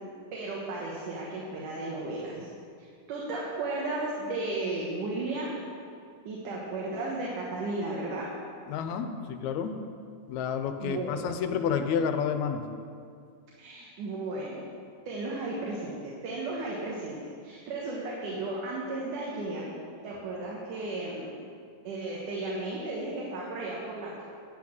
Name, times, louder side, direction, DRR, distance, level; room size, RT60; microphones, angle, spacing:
voice 1, 0.3-2.5 3.1-5.5 6.3-8.3 10.8-11.3 13.6-14.6 15.1-16.0 16.2-19.6 20.0-21.3 21.8-24.2, right 2 dB, 85° right, -4 dB, 2.9 m, -34 dB
voice 2, 8.7-9.8 10.3-12.7, left 7 dB, 75° left, 8 dB, 1.9 m, -30 dB
11.0 x 6.3 x 8.8 m, 2.3 s
omnidirectional pair, 3.5 m